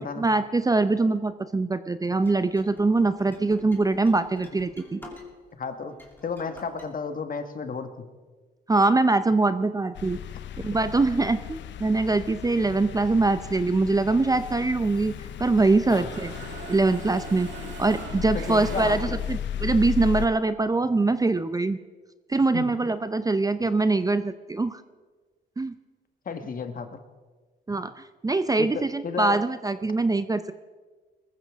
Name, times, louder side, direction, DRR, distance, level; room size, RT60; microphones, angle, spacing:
voice 1, 0.0-5.0 8.7-10.2 10.6-15.1 15.4-16.3 16.7-17.5 17.8-21.8 22.3-24.8 25.6-25.8 27.7-30.4, right 3 dB, 20° right, 11 dB, 0.6 m, -23 dB
sound 1, 2.2-5.6 5.9-6.9, left 2 dB, 10° left, 2.9 m, -48 dB
voice 2, 5.6-6.0 6.2-8.1 15.9-16.1 18.3-19.2 22.5-22.7 26.2-27.0 28.6-29.4, left 5 dB, 45° left, 8 dB, 1.5 m, -33 dB
sound 2, 10.0-20.3, left 9 dB, 65° left, 0.6 m, -35 dB
Mechanisms, 14.8-15.7 16.0-19.6, right 5 dB, 70° right, 1.8 m, -42 dB
21.0 x 15.0 x 3.6 m, 1.4 s
cardioid pair, 90°, 20 cm